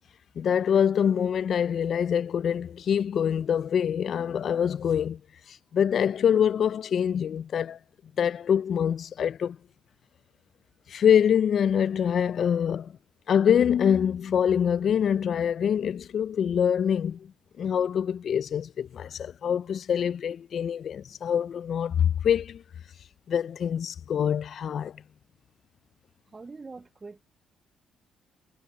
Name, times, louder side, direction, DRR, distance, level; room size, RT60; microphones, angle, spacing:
voice 1, 0.4-5.2 5.5-7.8 8.2-9.6 10.9-12.9 13.3-17.3 17.6-22.6 23.3-25.0, left 8 dB, 60° left, 0.3 m, -25 dB
voice 2, 26.3-27.2, right 4 dB, 25° right, 0.4 m, -43 dB
cardioid pair, 90°, 0 cm